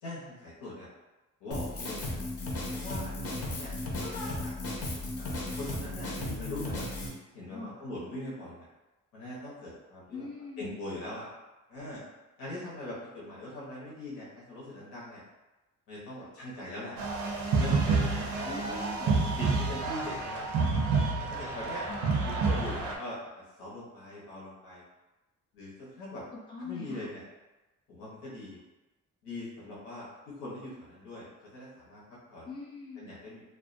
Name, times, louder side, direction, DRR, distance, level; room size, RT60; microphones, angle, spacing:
voice 1, 0.0-0.9 1.4-2.2 2.7-3.7 4.2-4.5 5.1-6.1 6.4-6.9 7.3-8.7 9.1-10.3 10.6-11.3 11.7-12.0 12.4-15.2 15.9-17.0 17.5-18.8 19.0-20.6 21.1-21.8 22.2-23.2 23.6-24.8 25.5-26.2 26.6-27.2 27.9-28.6 29.2-32.5 32.9-33.4, left 1 dB, 90° left, -7 dB, 0.8 m, -41 dB
Drum kit, 1.5-7.1, left 2 dB, 50° left, 0.7 m, -35 dB
voice 2, 10.1-10.8 18.4-19.2 21.9-22.4 26.5-27.1 32.5-33.1, left 4 dB, 15° left, -4 dB, 0.3 m, -42 dB
sound 1, 17.0-23.0, right 4 dB, 70° right, 0.5 m, -29 dB
2.4 x 2.1 x 2.4 m, 1.1 s
cardioid pair, 90°, 30 cm